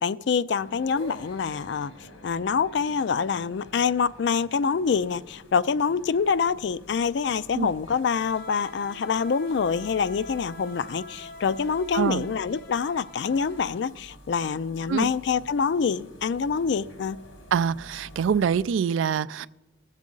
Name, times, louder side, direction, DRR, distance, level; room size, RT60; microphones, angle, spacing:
voice 1, 0.0-1.9 2.2-17.2, left 6 dB, 60° left, 0.3 m, -26 dB
sound 1, 0.6-18.7, left 1 dB, 75° left, 1.4 m, -46 dB
voice 2, 17.5-19.5, right 7 dB, 75° right, 0.3 m, -25 dB
19.5 x 7.4 x 3.8 m
head